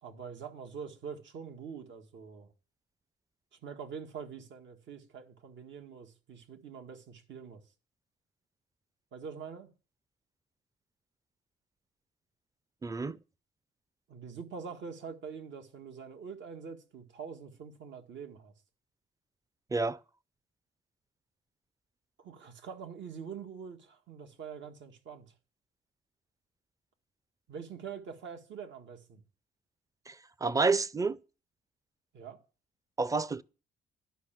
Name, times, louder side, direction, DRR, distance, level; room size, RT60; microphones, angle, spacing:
voice 1, 0.0-2.5 3.5-7.6 9.1-9.7 14.1-18.5 22.2-25.3 27.5-29.2 32.1-32.4, right 6 dB, 65° right, 1.8 m, -45 dB
voice 2, 12.8-13.2 19.7-20.0 30.1-30.2 30.4-31.2 33.0-33.4, right 4 dB, 15° right, 0.5 m, -29 dB
11.5 x 5.8 x 7.5 m
cardioid pair, 90°, 20 cm